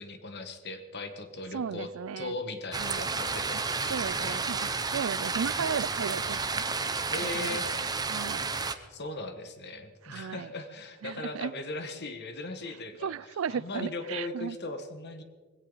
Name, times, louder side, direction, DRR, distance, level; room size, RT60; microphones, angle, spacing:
voice 1, 0.0-1.9 2.2-4.4 7.1-7.9 8.5-13.1 13.5-15.2, left 2 dB, 50° left, 1.5 m, -39 dB
voice 2, 1.5-2.4 2.8-3.2 3.9-6.6 7.3-7.6 8.1-8.4 10.0-10.5 11.0-11.5 13.0-14.6, right 7 dB, 65° right, 0.4 m, -35 dB
sound 1, 2.7-8.7, right 4 dB, 20° right, 0.8 m, -31 dB
20.0 x 16.5 x 4.0 m
head